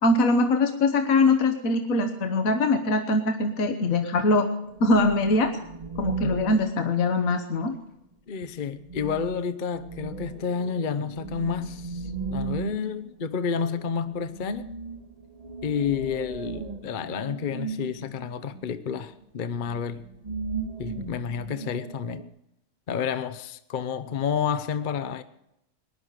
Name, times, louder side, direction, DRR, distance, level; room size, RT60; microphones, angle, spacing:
voice 1, 0.0-4.5 4.8-5.6 6.0-7.7, left 2 dB, 70° left, 1.6 m, -22 dB
sound 1, 4.6-7.5 8.4-8.5 8.8-19.1 19.6-22.3, right 4 dB, 30° right, 1.0 m, -37 dB
voice 2, 6.0-6.4 8.3-14.7 15.6-20.0 20.8-22.2 22.9-25.2, left 6 dB, 45° left, 0.8 m, -30 dB
19.0 x 11.0 x 6.6 m
omnidirectional pair, 1.5 m